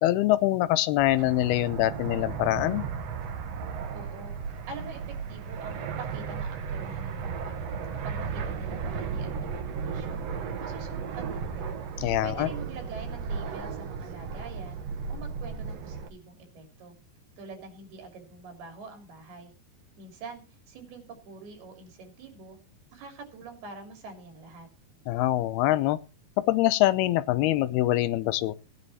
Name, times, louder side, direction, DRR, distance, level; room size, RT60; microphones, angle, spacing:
voice 1, 0.0-2.8 12.0-12.5 25.1-26.0 26.5-28.6, left 15 dB, 90° left, 14 dB, 2.8 m, -24 dB
Fixed-wing aircraft airplane, 1.0-16.1, right 6 dB, 60° right, 1.9 m, -35 dB
voice 2, 3.9-4.4 4.7-7.6 8.0-10.2 10.6-11.8 12.2-14.8 15.1-16.9 17.4-19.5 20.0-20.4 20.7-22.6 22.9-24.7, right 4 dB, 80° right, 5 dB, 5.1 m, -45 dB
17.5 x 10.0 x 4.2 m, 0.31 s
omnidirectional pair, 4.4 m